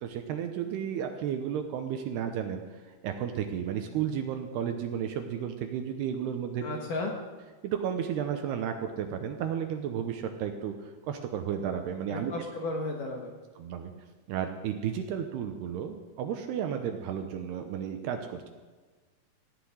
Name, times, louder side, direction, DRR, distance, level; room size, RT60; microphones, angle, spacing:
voice 1, 0.0-2.6 3.0-6.7 7.6-10.7 11.1-12.3 13.6-13.9 14.3-18.5, right 8 dB, 75° right, 5 dB, 2.7 m, -33 dB
voice 2, 6.6-7.1 12.1-13.3, left 2 dB, 60° left, 1 dB, 2.4 m, -34 dB
17.5 x 6.7 x 9.7 m, 1.3 s
omnidirectional pair, 5.3 m